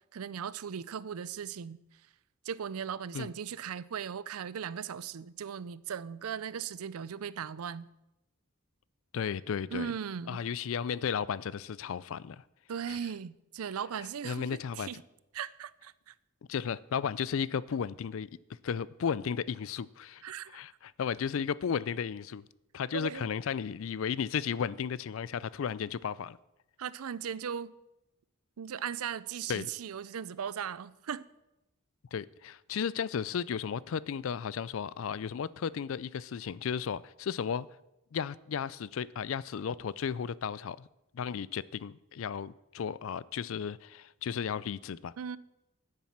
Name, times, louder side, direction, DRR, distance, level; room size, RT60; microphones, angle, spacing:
voice 1, 0.1-1.8 2.4-7.9 9.7-10.4 12.7-15.0 15.3-16.1 20.2-20.6 22.9-23.3 26.8-27.7 28.6-31.3 45.2-45.4, right 7 dB, 80° right, 0.5 m, -38 dB
voice 2, 9.1-9.9 10.3-12.4 12.9-13.0 14.2-15.0 16.5-18.3 18.6-22.4 22.7-26.4 29.5-29.7 32.1-37.7 38.1-40.9 41.1-45.1, left 7 dB, 65° left, 0.4 m, -34 dB
10.0 x 7.4 x 7.2 m
head